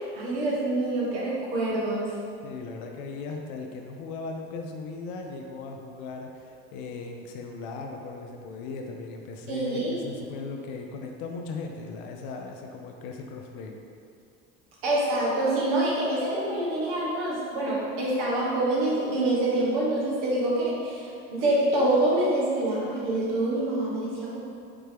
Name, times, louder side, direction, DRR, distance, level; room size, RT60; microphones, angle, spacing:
voice 1, 0.0-2.1 9.5-10.0 14.8-24.4, right 1 dB, 80° right, -6 dB, 1.3 m, -26 dB
voice 2, 2.4-13.7, left 4 dB, 75° left, 2 dB, 0.5 m, -38 dB
5.0 x 3.0 x 3.5 m, 2.5 s
hypercardioid pair, 70°, 31 cm